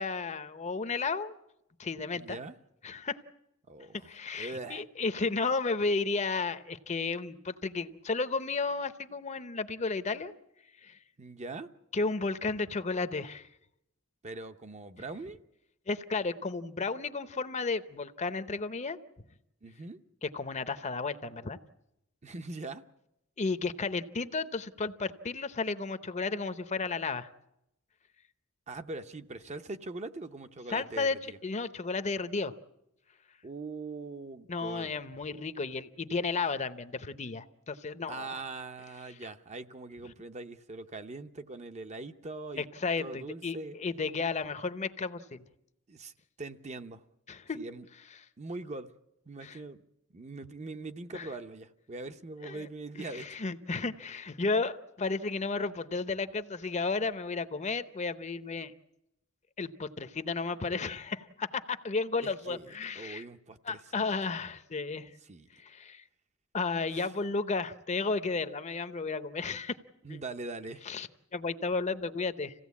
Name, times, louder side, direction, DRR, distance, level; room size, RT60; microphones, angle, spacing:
voice 1, 0.0-1.4 1.8-2.4 2.8-3.2 4.0-10.3 10.8-11.0 11.9-13.5 15.9-19.0 20.2-21.6 23.4-27.3 30.7-31.2 31.4-32.5 34.5-38.4 39.2-39.3 42.6-45.4 47.3-47.6 49.4-49.6 51.1-51.3 52.4-52.7 53.0-58.7 59.6-63.2 63.6-65.1 65.6-66.0 66.5-69.8 70.1-70.2 70.8-72.5, left 4 dB, 35° left, 12 dB, 0.8 m, -33 dB
voice 2, 2.1-2.6 3.7-4.1 4.4-4.8 11.2-11.7 14.2-15.4 19.6-20.0 22.2-22.8 28.7-31.4 33.4-34.9 38.1-43.8 45.9-46.1 46.4-47.0 47.5-47.9 48.4-48.9 49.3-49.8 50.1-53.4 62.2-62.7 62.9-64.1 65.3-65.5 66.9-67.1 70.0-70.9, right 3 dB, 35° right, 9 dB, 0.8 m, -42 dB
26.5 x 16.5 x 8.4 m, 0.88 s
head